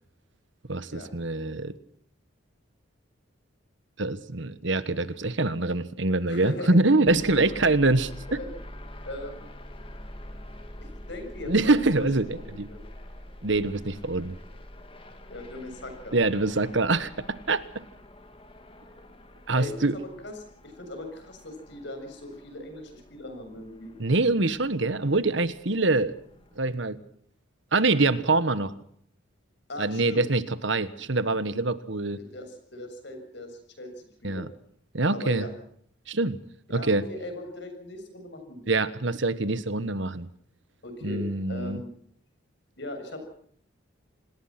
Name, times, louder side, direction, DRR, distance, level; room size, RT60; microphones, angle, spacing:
voice 1, 0.7-1.7 4.0-8.1 11.5-12.7 13.4-14.4 16.1-17.6 19.5-20.0 24.0-26.1 26.6-27.0 27.7-28.7 29.8-32.2 34.2-34.5 34.9-35.4 36.1-36.4 36.7-37.0 38.7-40.3 41.0-41.8, right 2 dB, 65° right, 14 dB, 1.3 m, -24 dB
voice 2, 6.3-6.8 7.3-7.4 8.3-8.5 9.1-9.5 11.1-12.1 12.3-12.8 15.3-16.2 19.5-19.9 20.2-20.3 20.6-23.9 29.7-30.3 32.2-33.9 34.2-34.4 35.1-35.5 36.7-38.6 40.8-41.9 42.8-43.3, left 1 dB, 60° left, 6 dB, 7.2 m, -39 dB
sound 1, 7.1-26.7, left 1 dB, 25° left, 2.4 m, -46 dB
27.0 x 19.5 x 6.0 m, 0.62 s
head